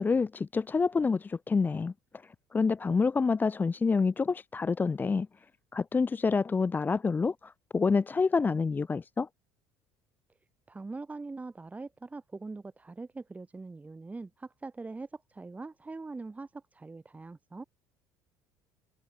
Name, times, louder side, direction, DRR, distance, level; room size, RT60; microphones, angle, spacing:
voice 1, 0.0-1.9 2.2-5.5 5.7-9.3, left 4 dB, 20° left, 0.7 m, -28 dB
voice 2, 10.7-17.6, right 3 dB, 15° right, 7.4 m, -42 dB
supercardioid pair, 95°, 8 cm